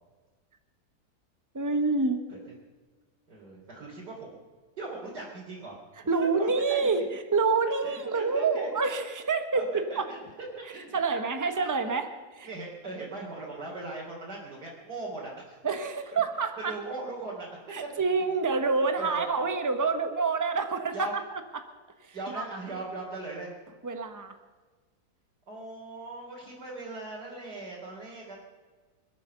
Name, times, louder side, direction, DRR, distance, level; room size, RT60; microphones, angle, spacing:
voice 1, 1.5-2.2 6.1-10.1 10.9-12.1 12.3-12.5 15.6-16.8 17.7-21.7 22.1-22.5 23.8-24.3, right 4 dB, 15° right, 8 dB, 0.9 m, -27 dB
voice 2, 3.3-4.4 4.8-5.8 6.4-6.9 7.8-8.7 9.5-10.2 10.6-11.5 11.8-12.1 12.4-15.6 16.1-16.2 16.7-17.5 19.0-19.2 20.9-21.1 22.1-23.5 25.5-28.4, right 2 dB, 75° right, -6 dB, 3.9 m, -39 dB
25.0 x 8.4 x 6.9 m, 1.4 s
omnidirectional pair, 1.8 m